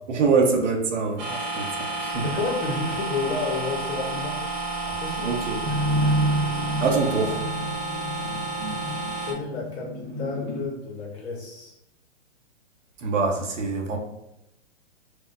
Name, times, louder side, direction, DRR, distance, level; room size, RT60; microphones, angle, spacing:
voice 1, 0.1-1.6 2.0-2.2 5.2-5.6 6.8-7.4 13.0-14.0, right 4 dB, 85° right, 1 dB, 0.8 m, -24 dB
sound 1, 1.2-9.3, right 3 dB, 40° right, 0.8 m, -31 dB
voice 2, 2.1-4.4 4.8-5.4 9.2-11.7, left 3 dB, 65° left, -2 dB, 1.0 m, -31 dB
sound 2, 5.6-10.7, right 1 dB, 10° right, 0.4 m, -28 dB
4.5 x 2.1 x 2.5 m, 0.86 s
hypercardioid pair, 145°, 35 cm